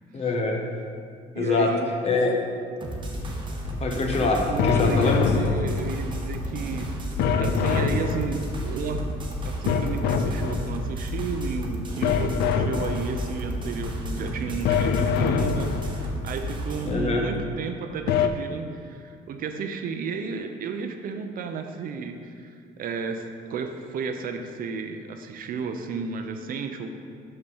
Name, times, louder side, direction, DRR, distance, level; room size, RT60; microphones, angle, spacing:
voice 1, 0.1-0.6 1.3-1.7 2.0-2.4 3.8-5.3 16.8-17.2, left 3 dB, 40° left, 1 dB, 1.1 m, -24 dB
voice 2, 1.3-2.0 4.5-7.0 7.4-26.9, right 5 dB, 55° right, 6 dB, 0.6 m, -33 dB
sound 1, 2.8-16.9, equal, 30° right, 1.1 m, -32 dB
sound 2, 4.6-6.2 7.2-8.7 9.7-11.0 12.0-13.4 14.7-16.2 18.1-18.3, left 6 dB, 75° left, 0.4 m, -25 dB
5.8 x 5.5 x 5.4 m, 2.2 s
cardioid pair, 110°, 17 cm